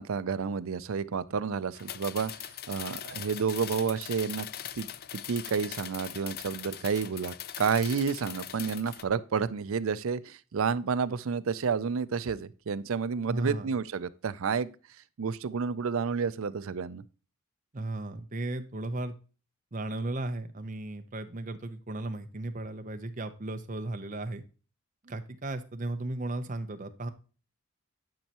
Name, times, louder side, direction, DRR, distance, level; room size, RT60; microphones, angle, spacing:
voice 1, 0.0-4.5 4.8-4.9 5.3-14.7 15.2-17.0, right 6 dB, 65° right, 0.5 m, -30 dB
sound 1, 1.7-9.0, left 11 dB, 45° left, 0.4 m, -41 dB
voice 2, 13.3-13.7 17.7-19.1 19.7-24.4 25.0-27.1, right 2 dB, 35° right, 0.7 m, -35 dB
10.5 x 5.5 x 2.9 m
head